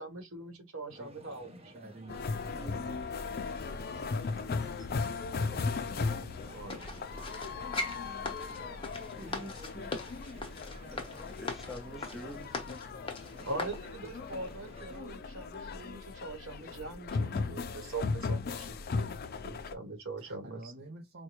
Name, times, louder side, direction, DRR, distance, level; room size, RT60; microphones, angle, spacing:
voice 1, 0.0-1.7 6.5-7.0 13.4-19.1 19.4-20.7, right 2 dB, 75° right, 1.2 m, -42 dB
sound 1, 0.9-15.0, equal, 30° right, 0.9 m, -53 dB
voice 2, 1.7-3.2 20.2-21.2, right 2 dB, 55° right, 0.6 m, -49 dB
sound 2, 2.1-19.7, left 4 dB, 50° left, 0.5 m, -37 dB
voice 3, 4.4-5.9 8.1-8.5 9.2-9.9 10.3-10.6 10.8-11.0 11.4-12.8, equal, ahead, 0.6 m, -48 dB
sound 3, 6.7-13.8 14.4-14.5, left 2 dB, 25° left, 0.9 m, -40 dB
4.5 x 2.2 x 3.0 m
head